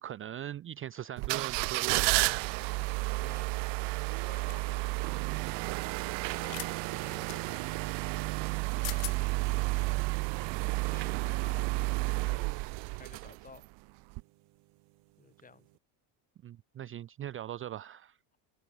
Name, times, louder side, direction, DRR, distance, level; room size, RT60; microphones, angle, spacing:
voice 1, 0.0-2.2 16.4-18.2, right 11 dB, 30° right, 0.6 m, -40 dB
sound 1, 1.2-13.7 14.1-14.2, right 26 dB, 65° right, 1.0 m, -31 dB
voice 2, 3.2-3.6 4.3-5.5 6.3-10.1 10.8-12.6 13.0-13.7 15.2-15.7, left 5 dB, 20° left, 3.3 m, -54 dB
sound 2, 4.5-4.7 6.4-6.7 7.3-7.4 8.5-8.6 8.8-9.2, left 34 dB, 75° left, 0.6 m, -40 dB
cardioid pair, 150°, 45 cm